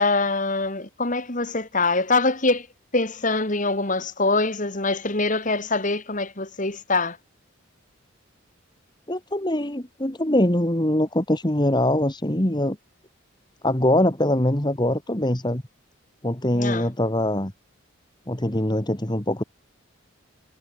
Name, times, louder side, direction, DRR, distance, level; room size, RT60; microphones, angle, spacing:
voice 1, 0.0-2.7 2.9-7.2 16.5-16.9, left 3 dB, 35° left, 2.7 m, -24 dB
voice 2, 9.1-12.8 13.6-15.6 16.2-17.5 18.3-19.4, left 1 dB, 20° left, 1.8 m, -23 dB
head